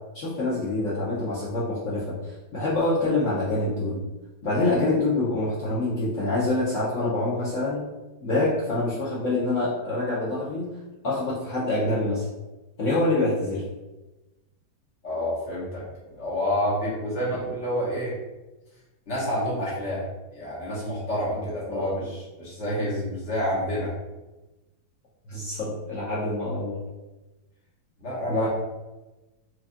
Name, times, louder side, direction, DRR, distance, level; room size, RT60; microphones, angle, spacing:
voice 1, 0.1-4.0 4.4-7.8 8.2-10.7 11.0-12.3 12.8-13.6 17.3-17.4 21.7-22.1 25.3-26.8 28.3-28.5, left 2 dB, 70° left, -8 dB, 0.7 m, -26 dB
voice 2, 15.0-18.1 19.1-20.0 20.3-23.9 28.0-28.5, equal, 45° left, -7 dB, 1.0 m, -29 dB
4.6 x 2.5 x 2.5 m, 1.1 s
omnidirectional pair, 2.3 m